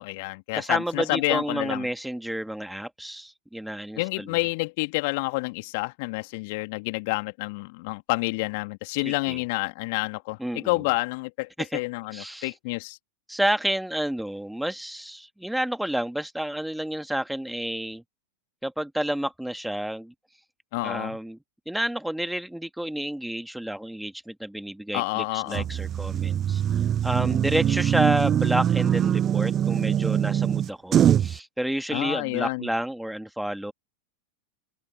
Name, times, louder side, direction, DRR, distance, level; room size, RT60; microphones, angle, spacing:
voice 1, 0.0-1.9 4.0-13.0 20.7-21.2 24.9-25.7 31.9-32.7, left 27 dB, 50° left, 2.4 m, -29 dB
voice 2, 0.5-4.3 9.0-9.4 10.4-10.7 11.6-11.8 12.1-12.5 13.3-18.0 18.6-20.1 20.8-21.4 21.7-33.7, right 1 dB, ahead, 1.9 m, -30 dB
sound 1, 25.5-31.4, right 10 dB, 25° right, 0.5 m, -23 dB
open air
figure-of-eight pair, 90°, 0 cm